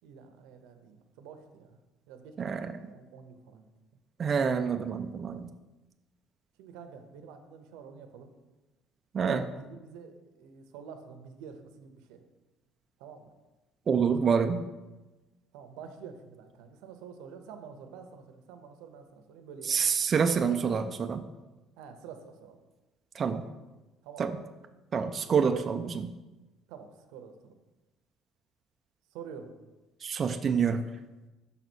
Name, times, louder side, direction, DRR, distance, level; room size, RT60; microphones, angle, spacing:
voice 1, 0.0-1.8 2.1-3.7 6.6-8.3 9.2-12.2 13.0-13.3 15.5-20.0 21.8-22.6 24.0-24.4 26.7-27.6 29.1-29.5, right 6 dB, 90° right, 7 dB, 0.7 m, -48 dB
voice 2, 2.4-2.8 4.2-5.5 9.1-9.4 13.9-14.6 19.6-21.3 23.1-23.5 24.2-24.3 24.9-26.1 30.0-30.8, right 6 dB, 30° right, 6 dB, 0.3 m, -27 dB
5.6 x 4.0 x 6.1 m, 1.1 s
cardioid pair, 160°, 0 cm